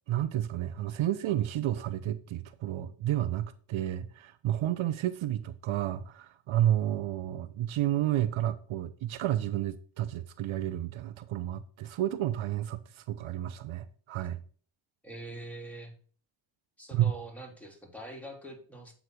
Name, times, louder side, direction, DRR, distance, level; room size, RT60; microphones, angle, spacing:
voice 1, 0.1-14.4 16.9-17.1, right 12 dB, 75° right, 0.7 m, -31 dB
voice 2, 15.0-15.9 16.8-18.9, right 1 dB, 5° left, 3.3 m, -44 dB
7.9 x 4.0 x 6.1 m
supercardioid pair, 45°, 49 cm